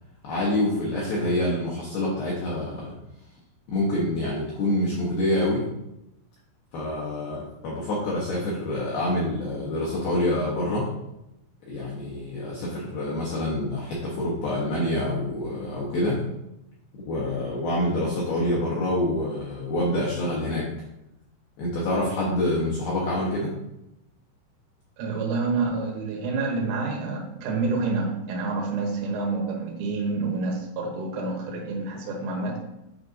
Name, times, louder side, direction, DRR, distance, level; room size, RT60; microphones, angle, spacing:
voice 1, 0.2-2.9 3.7-5.7 6.7-10.9 11.7-16.2 16.9-20.7 21.6-23.5, left 1 dB, 75° left, -6 dB, 2.2 m, -26 dB
voice 2, 25.0-32.6, right 3 dB, 80° right, 0 dB, 3.5 m, -28 dB
9.2 x 5.0 x 2.6 m, 0.88 s
omnidirectional pair, 5.7 m